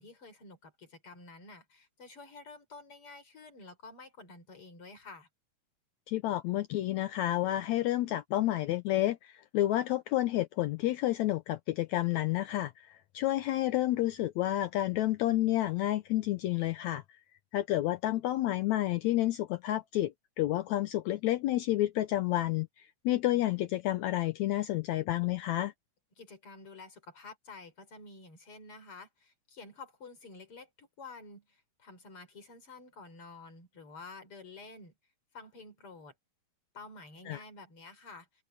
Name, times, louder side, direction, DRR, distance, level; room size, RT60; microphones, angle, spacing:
voice 1, 0.0-5.3 26.2-34.9 35.3-36.1 36.7-38.3, left 3 dB, 40° left, 5.3 m, -50 dB
voice 2, 6.1-17.0 17.5-22.7 23.0-25.7 37.3-37.4, left 15 dB, 75° left, 1.8 m, -30 dB
omnidirectional pair, 3.8 m